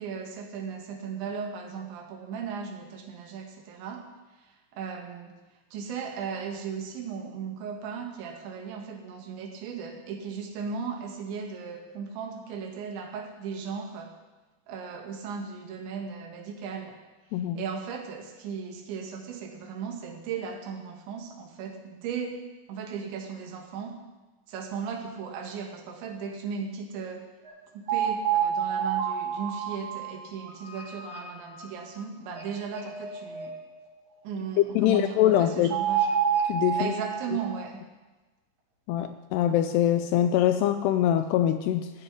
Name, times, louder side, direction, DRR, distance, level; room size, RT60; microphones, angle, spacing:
voice 1, 0.0-4.1 4.7-5.3 5.7-14.1 14.7-17.0 17.6-22.4 22.7-24.0 24.5-27.3 27.7-33.5 34.2-36.1 36.8-37.8, right 6 dB, 80° right, 3 dB, 4.0 m, -36 dB
voice 2, 17.3-17.6 34.8-35.8 36.5-37.0 38.9-41.9, left 11 dB, 80° left, 9 dB, 2.4 m, -23 dB
sound 1, 27.5-27.6 27.9-31.6 31.9-32.0 32.4-32.5 32.7-33.5 35.7-37.5, right 8 dB, 65° right, 5.0 m, -29 dB
14.5 x 8.1 x 9.5 m, 1.2 s
omnidirectional pair, 5.2 m